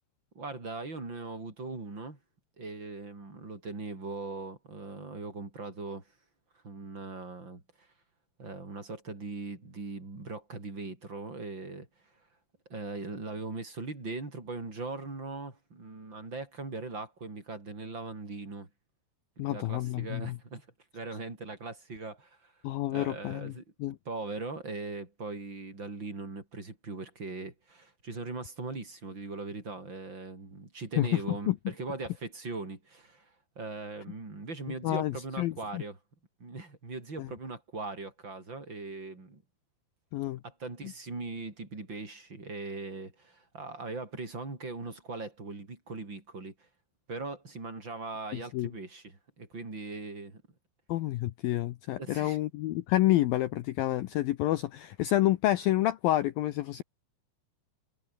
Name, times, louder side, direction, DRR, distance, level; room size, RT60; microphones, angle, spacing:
voice 1, 0.3-2.2 2.6-6.0 6.6-7.9 8.4-12.1 12.7-18.7 19.4-20.7 20.9-22.5 22.9-36.0 36.4-39.4 40.4-46.7 47.1-50.4 52.0-52.4, right 3 dB, 25° right, 6.3 m, -40 dB
voice 2, 19.4-20.4 22.6-23.5 23.8-24.0 31.0-31.1 31.5-31.6 34.8-35.1 35.4-35.8 37.2-37.3 40.1-40.4 48.5-48.7 50.9-56.8, left 15 dB, 85° left, 2.0 m, -28 dB
omnidirectional pair, 5.3 m